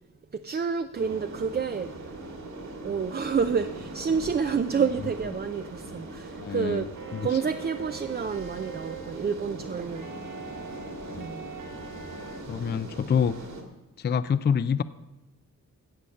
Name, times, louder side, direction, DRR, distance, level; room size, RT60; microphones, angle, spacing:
voice 1, 0.3-2.1 2.8-6.9 7.2-10.1 11.1-11.5, right 6 dB, 30° right, 9 dB, 0.4 m, -29 dB
sound 1, 0.9-13.6, right 2 dB, 55° right, 2.2 m, -41 dB
voice 2, 6.4-7.4 11.1-11.2 12.5-13.4 14.0-14.8, left 7 dB, 30° left, 13 dB, 0.4 m, -27 dB
sound 2, 6.9-12.4, right 5 dB, 80° right, 1.7 m, -43 dB
16.5 x 7.0 x 6.5 m, 0.99 s
wide cardioid pair, 125°, 33 cm